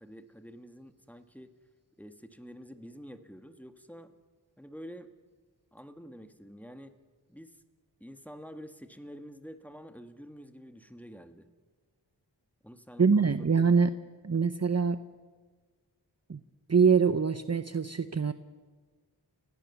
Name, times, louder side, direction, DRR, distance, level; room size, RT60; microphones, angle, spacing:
voice 1, 0.0-1.5 2.0-4.1 4.6-5.1 5.7-6.9 7.3-7.6 8.0-11.5 12.6-13.5, equal, 5° left, 8 dB, 1.6 m, -48 dB
voice 2, 13.0-13.9 14.2-15.0 16.3-16.4 16.7-18.3, right 5 dB, 35° right, 12 dB, 0.8 m, -24 dB
30.0 x 16.5 x 7.1 m, 1.4 s
wide cardioid pair, 55°, 43 cm